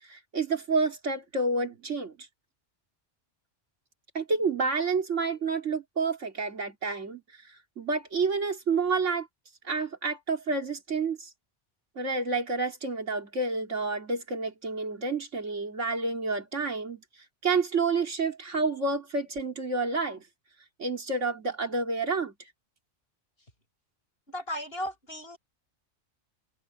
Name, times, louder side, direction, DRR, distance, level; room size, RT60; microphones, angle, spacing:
voice 1, 0.1-2.1 4.1-7.2 7.8-9.3 9.6-11.3 12.0-17.0 17.4-20.2 20.8-22.3, right 4 dB, 85° right, 3.2 m, -29 dB
voice 2, 24.3-25.4, equal, 55° left, 6.6 m, -35 dB
omnidirectional pair, 1.2 m